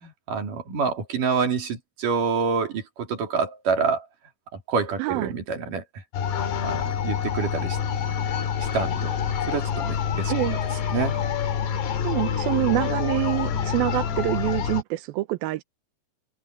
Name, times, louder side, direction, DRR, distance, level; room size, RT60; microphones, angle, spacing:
voice 1, 0.0-4.1 4.5-5.8 6.6-7.8 8.6-9.1 9.5-10.3 10.9-11.2, right 5 dB, 50° right, 4.5 m, -27 dB
voice 2, 5.0-5.3 10.3-10.6 12.0-15.6, right 18 dB, 80° right, 2.2 m, -26 dB
sound 1, 6.1-14.8, left 7 dB, 65° left, 4.4 m, -27 dB
omnidirectional pair, 5.1 m